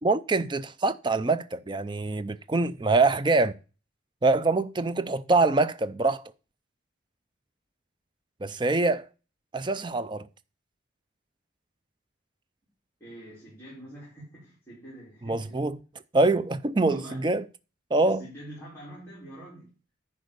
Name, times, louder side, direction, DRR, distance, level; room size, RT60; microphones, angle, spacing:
voice 1, 0.0-3.5 4.2-6.2 8.4-9.1 9.5-10.3 15.3-15.8 16.1-17.4 17.9-18.2, right 3 dB, 25° right, 0.4 m, -24 dB
voice 2, 13.0-15.7 16.9-17.3 18.0-19.7, right 1 dB, 10° left, 3.9 m, -45 dB
10.5 x 4.4 x 6.7 m
head